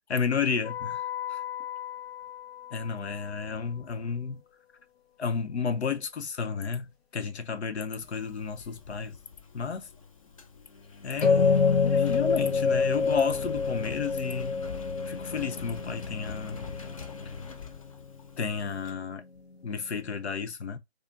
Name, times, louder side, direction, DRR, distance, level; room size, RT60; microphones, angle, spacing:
voice 1, 0.1-1.0 1.3-1.4 2.7-4.4 5.2-6.8 7.1-9.1 9.5-9.9 11.0-14.6 15.0-16.7 18.4-19.2 19.6-20.8, left 6 dB, 85° left, 0.8 m, -32 dB
sound 1, 0.6-3.3 11.2-20.2, left 5 dB, 65° left, 1.4 m, -29 dB
Engine, 8.0-18.9, left 4 dB, 30° left, 0.5 m, -43 dB
4.8 x 2.5 x 2.6 m
hypercardioid pair, 155°, 33 cm